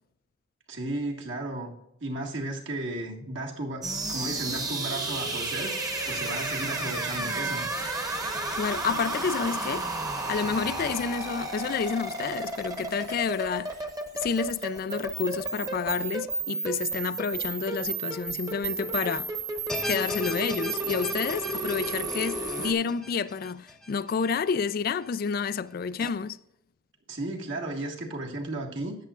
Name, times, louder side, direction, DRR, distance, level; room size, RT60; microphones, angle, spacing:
voice 1, 0.7-1.7 2.0-7.7 27.1-29.0, right 2 dB, 65° right, 1.8 m, -34 dB
sound 1, 3.8-22.7, right 2 dB, 20° right, 1.0 m, -32 dB
voice 2, 8.5-9.9 10.3-13.8 14.1-19.3 19.8-26.4, left 6 dB, 45° left, 0.3 m, -29 dB
sound 2, 19.7-24.9 25.3-25.4 26.0-26.1, left 1 dB, 5° left, 0.7 m, -40 dB
13.0 x 9.2 x 2.4 m
head